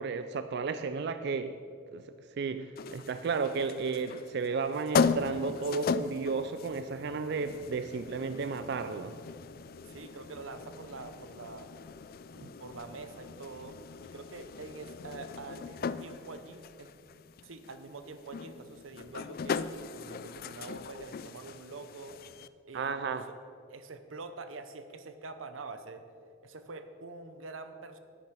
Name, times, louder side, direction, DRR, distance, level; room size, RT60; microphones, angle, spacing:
voice 1, 0.0-1.6 1.9-2.1 2.4-9.2 12.4-12.5 22.7-23.3, right 4 dB, 55° right, 11 dB, 0.4 m, -33 dB
sound 1, 2.8-22.5, left 5 dB, 50° left, 0.3 m, -37 dB
voice 2, 9.9-11.7 12.6-13.8 14.0-16.9 17.4-19.6 19.9-22.2 22.7-23.0 23.3-23.4 23.7-26.1 26.4-28.0, right 3 dB, 90° right, 10 dB, 0.8 m, -45 dB
10.0 x 9.2 x 6.0 m, 2.4 s
head